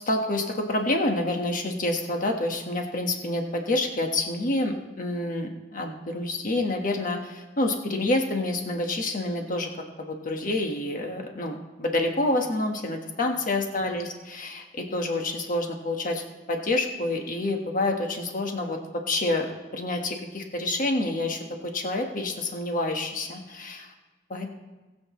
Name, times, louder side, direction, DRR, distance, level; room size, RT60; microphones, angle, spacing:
voice 1, 0.1-9.7 10.0-23.9 24.3-24.5, left 2 dB, 45° left, 3 dB, 1.3 m, -28 dB
20.0 x 7.8 x 3.1 m, 1.2 s
head